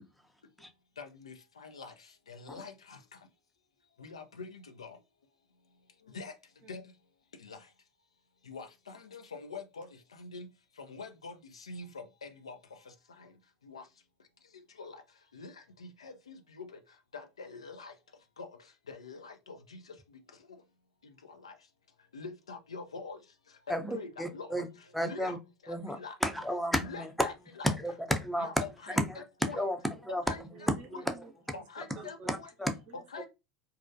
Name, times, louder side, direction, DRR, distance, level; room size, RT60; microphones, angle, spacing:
voice 1, 1.0-1.3 1.6-1.9 2.3-2.7 4.0-4.9 6.1-6.3 6.7-6.8 7.4-7.6 8.5-9.9 10.2-10.5 10.9-11.3 11.7-11.9 12.2-12.5 13.7-13.8 14.8-15.0 15.3-15.5 15.8-16.7 17.1-17.9 18.4-18.5 18.9-19.6 21.4-21.5 22.1-23.2 23.7-24.5 25.0-25.4 25.7-26.1 26.8-27.7 28.4-29.6 30.3-30.4 31.5-32.5 33.1-33.3, left 4 dB, 90° left, 0.4 m, -44 dB
voice 2, 23.7-24.7 24.9-25.4 25.7-27.3 27.6-28.5 28.9-29.2 29.5-30.5 30.9-31.0 32.2-32.7, equal, ahead, 0.5 m, -32 dB
voice 3, 30.5-31.6 31.9-32.3 32.9-33.0, right 5 dB, 50° right, 0.6 m, -51 dB
2.3 x 2.1 x 2.6 m
hypercardioid pair, 80°, 3 cm